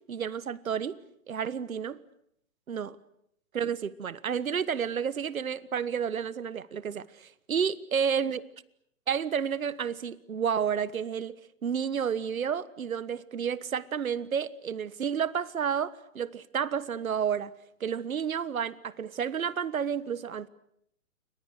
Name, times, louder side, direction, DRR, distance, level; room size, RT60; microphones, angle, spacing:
voice 1, 0.1-1.0 1.3-2.0 2.7-3.0 3.5-8.4 9.1-11.4 11.6-17.5 17.8-20.5, right 7 dB, 90° right, 1.4 m, -31 dB
29.0 x 24.5 x 6.6 m
hypercardioid pair, 145°, 41 cm